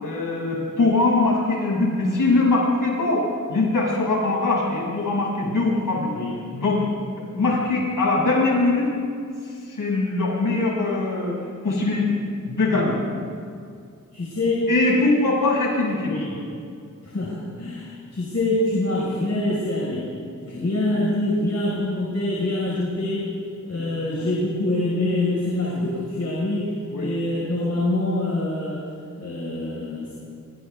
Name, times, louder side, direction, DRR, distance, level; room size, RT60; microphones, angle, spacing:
voice 1, 0.0-6.1 6.5-6.8 7.3-8.9 9.7-11.4 11.6-12.2 12.5-13.0 14.7-16.2 23.8-24.3 26.9-27.1, left 2 dB, 85° left, -4 dB, 7.2 m, -22 dB
voice 2, 14.1-14.7 16.1-16.4 17.0-20.1 20.4-23.3 23.6-28.8 29.2-30.1, left 2 dB, 50° left, -5 dB, 5.4 m, -25 dB
29.5 x 25.0 x 3.6 m, 2.3 s
wide cardioid pair, 120°, 32 cm